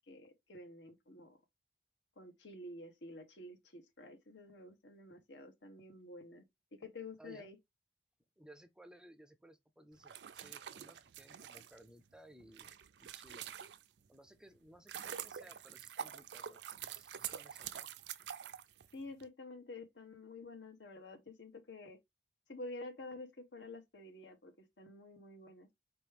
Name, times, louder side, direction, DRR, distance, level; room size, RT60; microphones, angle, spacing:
voice 1, 0.1-1.4 2.2-6.4 6.7-7.6 18.9-22.0 22.5-25.7, left 2 dB, 80° left, 1.2 m, -50 dB
voice 2, 8.4-12.7 13.0-13.5 14.1-17.9, right 1 dB, 5° right, 0.4 m, -59 dB
sound 1, 10.0-14.1 14.6-19.3, right 9 dB, 70° right, 0.4 m, -46 dB
4.5 x 3.0 x 3.3 m
head